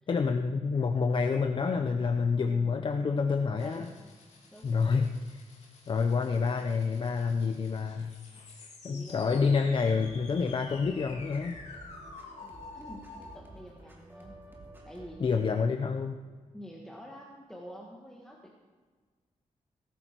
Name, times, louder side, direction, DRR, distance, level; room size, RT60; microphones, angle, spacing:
voice 1, 0.1-3.9 4.6-5.4 5.9-8.1 8.8-11.6 15.2-16.1, left 5 dB, 40° left, 6 dB, 0.7 m, -28 dB
sound 1, 3.6-13.4, left 3 dB, 60° left, 3.3 m, -50 dB
voice 2, 3.6-4.0 4.5-4.8 8.8-9.5 12.4-14.4 14.9-15.3 16.5-18.5, equal, 5° left, -2 dB, 1.5 m, -47 dB
sound 2, 9.9-15.2, right 1 dB, 15° right, 2.8 m, -51 dB
17.5 x 15.0 x 4.5 m, 1.5 s
wide cardioid pair, 165°, 13 cm